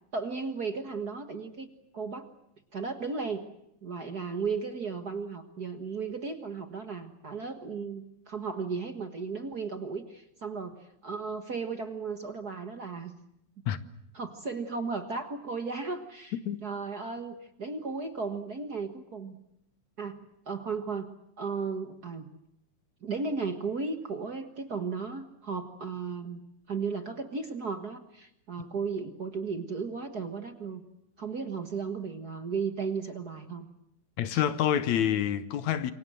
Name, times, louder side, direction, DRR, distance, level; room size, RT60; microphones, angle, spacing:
voice 1, 0.1-1.7 1.9-2.3 2.7-3.5 3.8-13.1 14.1-19.4 20.0-20.2 20.5-21.1 21.4-22.3 23.0-26.4 26.7-30.8 31.2-33.7 34.3-34.4, right 4 dB, 40° right, 1.6 m, -35 dB
voice 2, 34.2-35.9, left 10 dB, 75° left, 2.4 m, -27 dB
27.5 x 23.5 x 7.7 m
omnidirectional pair, 3.4 m